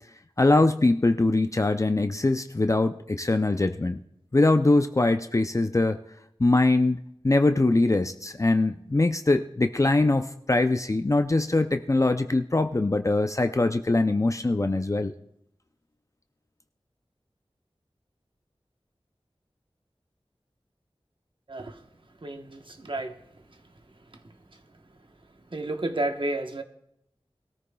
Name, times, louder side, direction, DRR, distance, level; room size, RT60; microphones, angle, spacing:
voice 1, 0.4-4.0 4.3-6.0 6.4-7.0 7.2-15.1, left 2 dB, 30° left, 8 dB, 0.5 m, -22 dB
voice 2, 21.5-21.8 22.2-23.2 25.5-26.6, right 2 dB, 60° right, 5 dB, 1.1 m, -31 dB
21.5 x 13.5 x 2.3 m, 0.74 s
wide cardioid pair, 55°, 10 cm